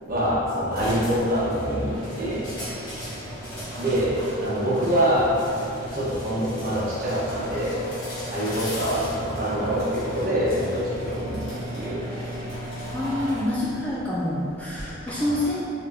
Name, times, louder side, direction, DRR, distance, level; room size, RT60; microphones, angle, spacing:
voice 1, 0.1-2.5 3.8-5.3 5.9-7.8 8.3-12.1 15.2-15.3, equal, 45° right, -8 dB, 1.0 m, -25 dB
sound 1, 0.7-15.1, equal, 45° left, 1.4 m, -36 dB
voice 2, 12.9-15.6, left 1 dB, 5° left, -7 dB, 0.3 m, -27 dB
4.0 x 3.7 x 2.6 m, 2.8 s
head